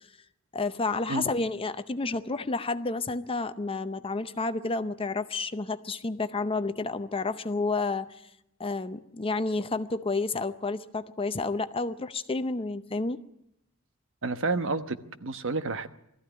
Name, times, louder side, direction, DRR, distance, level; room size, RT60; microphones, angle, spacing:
voice 1, 0.5-8.2 8.6-13.2, left 3 dB, 25° left, 11 dB, 0.7 m, -30 dB
voice 2, 14.2-15.9, right 3 dB, 60° right, 10 dB, 1.1 m, -30 dB
20.0 x 14.0 x 9.9 m, 0.82 s
head